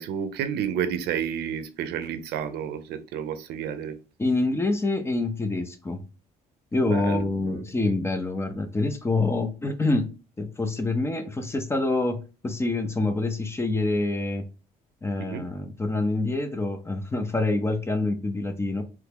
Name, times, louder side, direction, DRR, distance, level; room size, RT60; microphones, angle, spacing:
voice 1, 0.0-4.0 6.8-7.6 15.2-15.5, right 8 dB, 75° right, 0.5 m, -31 dB
voice 2, 4.2-6.0 6.7-10.1 10.4-14.4 15.0-18.8, left 2 dB, 15° left, 0.5 m, -26 dB
3.0 x 2.3 x 3.4 m
cardioid pair, 110°, 17 cm